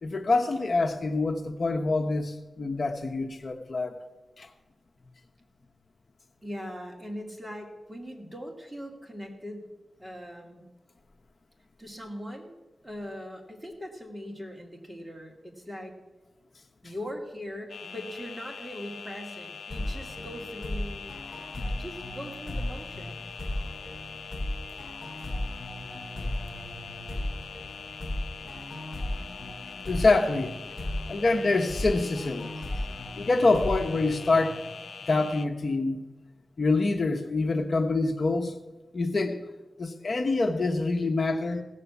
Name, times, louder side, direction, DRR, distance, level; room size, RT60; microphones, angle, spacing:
voice 1, 0.0-3.9 4.4-4.5 29.4-29.5 29.8-30.5 31.1-32.5 33.2-34.6 35.1-36.0 36.6-38.6 38.9-39.4 39.8-41.6, left 3 dB, 60° left, 5 dB, 1.0 m, -26 dB
voice 2, 6.4-9.7 10.0-10.6 11.8-12.6 12.8-15.9 16.8-21.2 21.5-23.2, equal, 10° right, 1 dB, 2.4 m, -40 dB
sound 1, 17.7-35.5, left 6 dB, 90° left, 0.6 m, -43 dB
sound 2, 19.7-35.2, left 1 dB, 30° left, 4.8 m, -36 dB
16.5 x 6.8 x 7.0 m, 1.2 s
wide cardioid pair, 80°, 0 cm